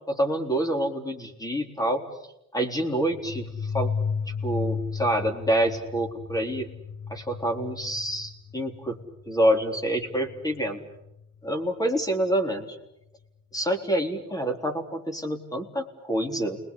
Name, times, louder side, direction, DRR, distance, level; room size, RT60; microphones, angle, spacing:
voice 1, 0.1-2.0 2.5-4.0 4.4-6.7 7.1-9.0 9.3-10.8 11.4-12.8 13.5-16.6, right 1 dB, 10° left, 5 dB, 3.7 m, -27 dB
sound 1, 3.0-11.4, left 6 dB, 85° left, 1.3 m, -34 dB
29.5 x 20.5 x 8.5 m, 0.86 s
cardioid pair, 90°, 30 cm